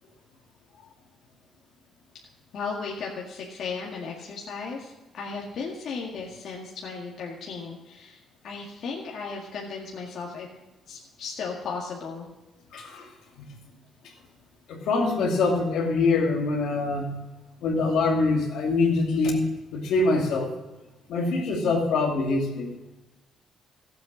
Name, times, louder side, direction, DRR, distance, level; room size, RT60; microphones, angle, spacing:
voice 1, 2.5-8.2 8.4-10.5 10.9-12.3, left 5 dB, 65° left, -2 dB, 2.0 m, -35 dB
voice 2, 12.7-13.1 13.4-13.5 14.7-17.1 17.6-19.4 19.7-20.6 21.1-22.7, left 3 dB, 85° left, -1 dB, 2.6 m, -24 dB
14.5 x 7.9 x 6.2 m, 1.1 s
cardioid pair, 90°, 0 cm